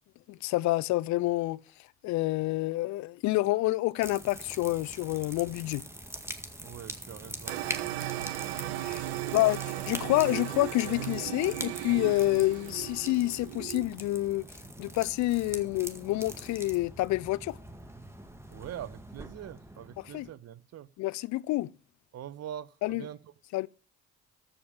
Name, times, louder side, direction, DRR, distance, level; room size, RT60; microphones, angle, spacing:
voice 1, 0.3-1.6 2.0-5.8 8.8-9.0 9.3-9.6 9.9-14.4 14.8-17.6 20.1-20.3 21.0-21.7 22.8-23.0 23.5-23.7, left 18 dB, 70° left, 0.6 m, -28 dB
sound 1, 4.0-20.3, right 1 dB, 10° right, 1.9 m, -44 dB
voice 2, 6.6-7.9 9.1-10.1 18.5-20.9 22.1-23.3, right 11 dB, 55° right, 0.9 m, -44 dB
sound 2, 7.5-13.9, right 14 dB, 90° right, 0.7 m, -36 dB
14.0 x 5.1 x 7.1 m
hypercardioid pair, 55°, 30 cm